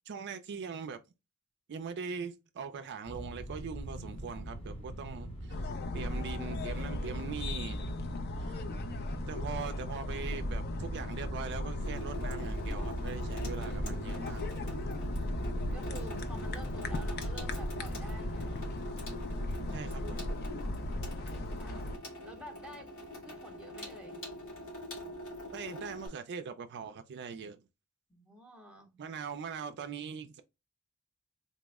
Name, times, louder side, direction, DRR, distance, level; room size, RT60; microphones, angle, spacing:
voice 1, 0.1-1.0 1.7-5.6 5.9-7.9 8.4-8.6 9.3-14.4 19.7-20.3 25.5-27.6 29.0-30.4, right 6 dB, 50° right, 0.4 m, -41 dB
sound 1, 3.1-18.8, right 1 dB, 25° left, 0.9 m, -42 dB
sound 2, 5.5-22.0, left 1 dB, 45° left, 0.5 m, -37 dB
Water tap faucet / Sink (filling or washing), 11.8-26.1, left 1 dB, 70° left, 2.0 m, -44 dB
voice 2, 15.0-18.7 21.2-22.9 23.2-24.2 28.1-29.0, right 2 dB, 5° right, 0.7 m, -51 dB
4.1 x 2.0 x 3.4 m
head